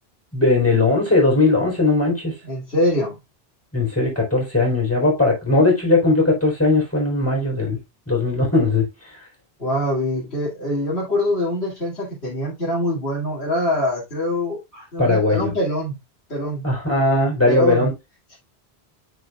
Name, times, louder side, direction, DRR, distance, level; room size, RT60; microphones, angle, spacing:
voice 1, 0.3-2.3 3.7-7.8 8.1-8.9 15.0-15.5 16.6-17.9, left 2 dB, 15° left, 3.9 m, -18 dB
voice 2, 2.4-3.2 9.6-16.0 16.3-16.6 17.5-17.9 18.3-18.4, left 1 dB, 90° left, 2.8 m, -24 dB
9.3 x 5.0 x 2.3 m
omnidirectional pair, 1.0 m